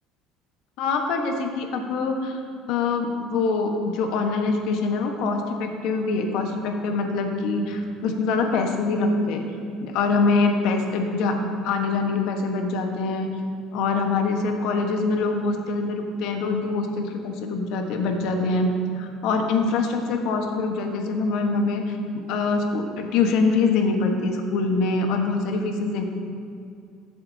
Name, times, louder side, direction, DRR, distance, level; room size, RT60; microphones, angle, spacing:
voice 1, 0.8-2.4 2.7-9.4 9.8-11.4 11.6-13.3 13.7-26.0, left 3 dB, 70° left, 3 dB, 1.3 m, -24 dB
15.0 x 7.7 x 2.8 m, 2.5 s
supercardioid pair, 105°, 0 cm